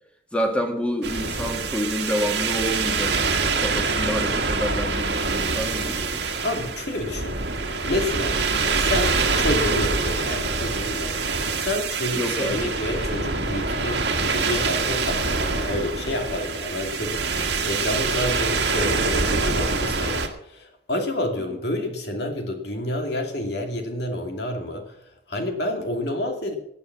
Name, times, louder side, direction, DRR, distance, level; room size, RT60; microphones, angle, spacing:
voice 1, 0.3-3.2 3.6-6.2 12.1-12.7 18.2-18.4, equal, 5° left, 3 dB, 2.0 m, -28 dB
sound 1, 1.0-20.3, right 4 dB, 65° right, 1.7 m, -25 dB
voice 2, 6.4-7.4 7.8-8.4 8.7-11.1 11.6-24.9 25.3-26.6, left 1 dB, 60° left, 3 dB, 2.5 m, -29 dB
17.0 x 9.2 x 6.0 m, 0.75 s
head